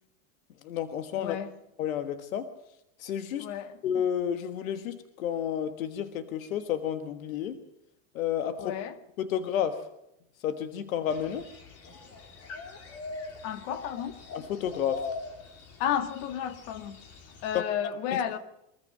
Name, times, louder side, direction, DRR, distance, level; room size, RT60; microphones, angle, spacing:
voice 1, 0.6-1.4 1.8-2.5 3.0-3.5 3.8-7.6 8.1-8.8 9.2-9.9 10.4-11.5 14.3-15.1 17.5-17.6, left 9 dB, 90° left, 1.5 m, -31 dB
voice 2, 1.1-1.5 3.4-3.8 8.6-9.0 13.4-14.2 15.8-17.0 17.4-18.4, left 9 dB, 60° left, 1.8 m, -32 dB
sound 1, 11.1-17.6, left 4 dB, 40° left, 2.9 m, -42 dB
23.0 x 14.5 x 7.7 m
supercardioid pair, 125°, 40 cm